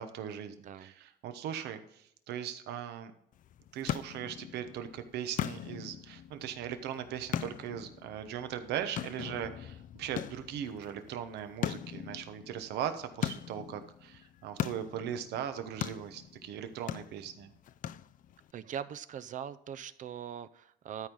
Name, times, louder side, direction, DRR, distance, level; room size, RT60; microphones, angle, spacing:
voice 1, 0.0-3.1 3.7-17.5, right 9 dB, 80° right, 9 dB, 1.0 m, -39 dB
sound 1, 3.3-18.5, left 11 dB, 50° left, 0.4 m, -41 dB
voice 2, 18.5-21.1, right 9 dB, 50° right, 14 dB, 0.6 m, -41 dB
12.5 x 4.7 x 5.3 m, 0.73 s
cardioid pair, 110°, 17 cm